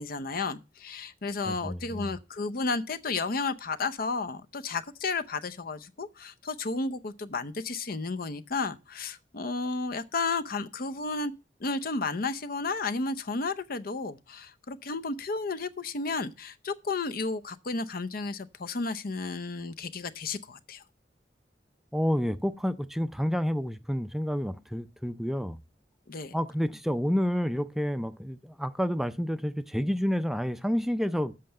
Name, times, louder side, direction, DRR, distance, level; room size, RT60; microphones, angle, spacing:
voice 1, 0.0-11.3 11.6-20.8 26.1-26.3, left 3 dB, 55° left, 0.7 m, -32 dB
voice 2, 1.5-2.1 21.9-25.6 26.3-31.4, equal, ahead, 0.4 m, -29 dB
7.6 x 5.6 x 7.5 m
head